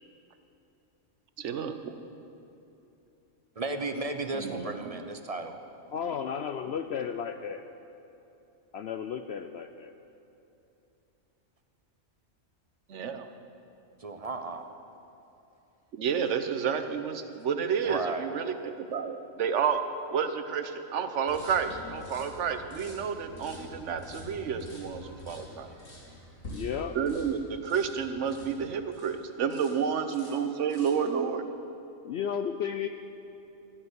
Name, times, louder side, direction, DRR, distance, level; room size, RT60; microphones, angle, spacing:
voice 1, 1.4-1.9 4.3-5.0 12.9-13.3 15.9-19.8 20.1-25.7 26.9-31.4, right 7 dB, 65° right, 9 dB, 1.2 m, -30 dB
voice 2, 3.6-5.5 14.0-14.6 17.8-18.2, right 3 dB, 35° right, 7 dB, 0.7 m, -34 dB
voice 3, 5.9-7.6 8.7-9.9 26.5-27.0 32.0-32.9, left 8 dB, 65° left, 7 dB, 0.7 m, -33 dB
sound 1, 21.3-29.2 29.5-29.8 30.1-31.1, left 1 dB, 85° left, 3.1 m, -46 dB
14.0 x 9.7 x 8.1 m, 2.9 s
omnidirectional pair, 1.4 m